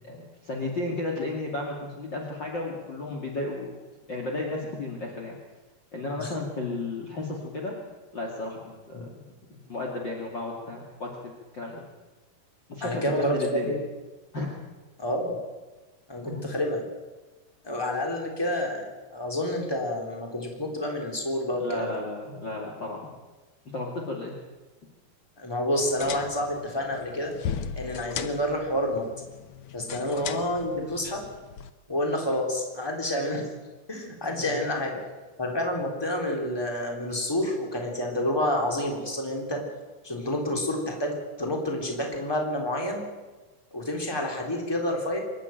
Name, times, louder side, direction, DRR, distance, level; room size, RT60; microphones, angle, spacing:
voice 1, 0.0-3.8 4.1-5.4 5.9-7.7 8.1-9.1 9.5-11.1 11.5-11.8 12.7-13.8 14.3-14.5 16.2-16.5 21.6-23.1 23.7-24.4 29.9-30.1 34.3-34.5, left 2 dB, 35° left, 0 dB, 2.7 m, -33 dB
voice 2, 12.8-13.7 15.0-15.4 16.1-16.8 17.6-18.8 19.1-22.0 25.4-27.3 27.8-29.1 29.7-31.2 31.9-33.5 33.9-35.0 35.4-39.6 40.0-43.0 43.7-45.2, left 1 dB, 5° left, 1 dB, 3.4 m, -29 dB
sound 1, 25.7-31.7, left 8 dB, 85° left, 1.2 m, -38 dB
25.0 x 12.5 x 9.3 m, 1.2 s
omnidirectional pair, 4.0 m